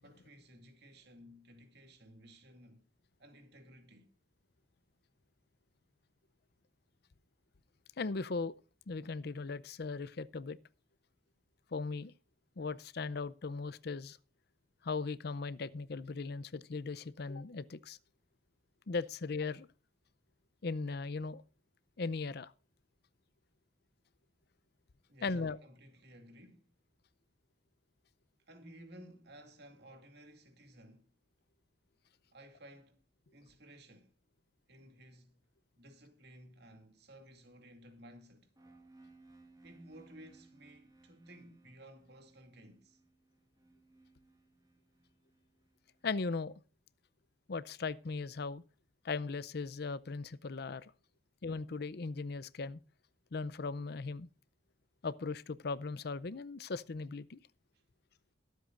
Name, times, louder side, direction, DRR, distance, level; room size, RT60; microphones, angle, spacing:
voice 1, 0.0-2.8 3.2-4.1 25.1-26.7 28.4-31.1 32.3-33.0 33.3-34.2 34.7-35.4 35.8-38.5 39.6-43.0 57.7-57.8, right 1 dB, 60° right, 2.4 m, -56 dB
voice 2, 8.0-8.5 8.9-10.6 11.7-12.1 12.6-14.2 14.8-18.0 18.9-19.7 20.6-21.4 22.0-22.5 25.2-25.6 46.0-46.5 47.5-48.6 49.0-50.9 51.4-52.8 53.3-54.3 55.0-57.4, left 4 dB, 55° left, 0.5 m, -38 dB
sound 1, 38.6-46.4, right 2 dB, 20° right, 1.8 m, -63 dB
22.0 x 8.3 x 2.5 m
head